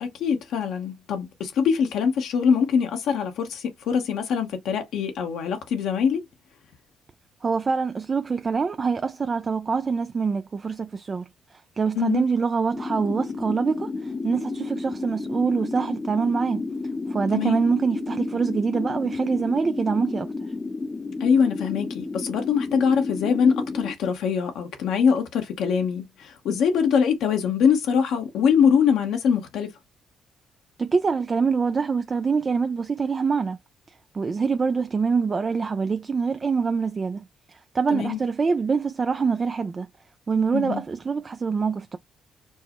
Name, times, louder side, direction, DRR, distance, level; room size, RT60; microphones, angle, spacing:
voice 1, 0.0-6.2 12.0-12.3 17.3-17.6 21.2-29.7 37.9-38.2 40.5-40.8, left 7 dB, 80° left, 0.9 m, -23 dB
voice 2, 7.4-16.6 17.1-20.3 30.8-33.6 34.1-39.9 40.3-42.0, right 5 dB, 35° right, 0.3 m, -25 dB
sound 1, 12.7-23.9, left 3 dB, 25° left, 0.7 m, -32 dB
4.6 x 2.0 x 2.9 m
cardioid pair, 90°, 0 cm